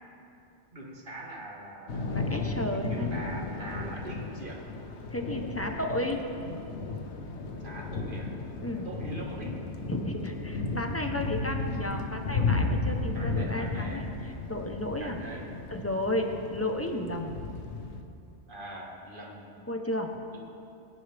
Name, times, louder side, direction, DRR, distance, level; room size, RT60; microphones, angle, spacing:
voice 1, 0.7-2.2 2.7-4.6 7.6-8.3 8.9-9.6 11.6-12.1 13.1-14.1 15.0-15.6 18.5-19.5 20.3-20.4, right 2 dB, 50° right, -1 dB, 2.0 m, -43 dB
Thunder / Rain, 1.9-18.0, left 3 dB, 75° left, 1.2 m, -34 dB
voice 2, 2.1-3.2 5.1-6.2 8.6-8.9 9.9-14.0 14.5-15.2 15.7-17.4 19.7-20.1, left 1 dB, 15° left, 3 dB, 0.9 m, -33 dB
22.0 x 10.0 x 3.5 m, 2.7 s
omnidirectional pair, 1.2 m